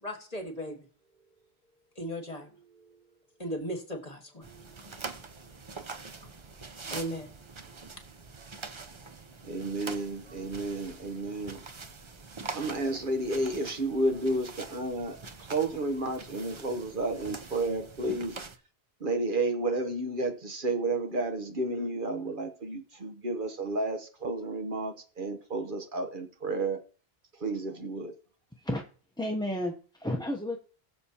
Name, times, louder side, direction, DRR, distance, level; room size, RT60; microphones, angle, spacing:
voice 1, 0.0-0.9 2.0-3.0 3.4-4.9 5.3-6.3 6.7-7.3, equal, 35° left, 1.9 m, -39 dB
sound 1, 4.4-18.6, right 4 dB, 35° right, 0.6 m, -44 dB
voice 2, 9.4-11.6 12.5-15.2 15.5-18.3 19.0-26.8 27.4-28.1, right 2 dB, 55° right, 1.1 m, -31 dB
voice 3, 29.2-30.6, left 1 dB, 5° left, 0.6 m, -32 dB
20.0 x 6.8 x 2.9 m
omnidirectional pair, 1.1 m